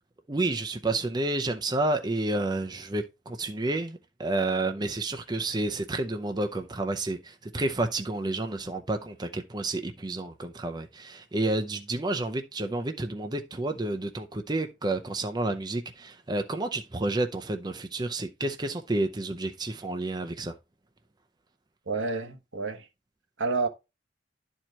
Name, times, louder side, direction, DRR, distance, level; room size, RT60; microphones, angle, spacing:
voice 1, 0.3-20.5, right 2 dB, 20° right, 0.6 m, -30 dB
voice 2, 21.9-22.9 23.4-23.7, right 3 dB, 80° right, 1.3 m, -29 dB
11.5 x 4.5 x 2.9 m
head